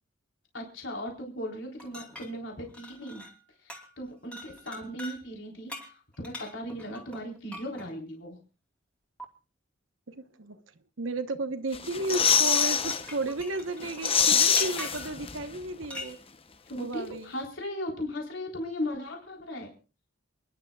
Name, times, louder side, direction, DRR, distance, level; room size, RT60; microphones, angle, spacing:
voice 1, 0.5-3.2 3.6-8.4 16.7-19.7, left 1 dB, 70° left, 0 dB, 3.9 m, -37 dB
sound 1, 1.8-3.4 3.7-4.0 4.3-5.2 5.7-7.9 9.2-9.3 12.3-15.2 15.9-16.1, left 1 dB, 5° left, 2.9 m, -43 dB
voice 2, 10.1-10.6 11.0-16.2 16.8-17.3, right 2 dB, 80° right, 9 dB, 1.1 m, -33 dB
sound 2, 11.7-13.0 13.4-13.5 13.8-15.6 15.8-15.9, left 7 dB, 30° left, 0.8 m, -24 dB
29.0 x 11.0 x 2.4 m, 0.34 s
head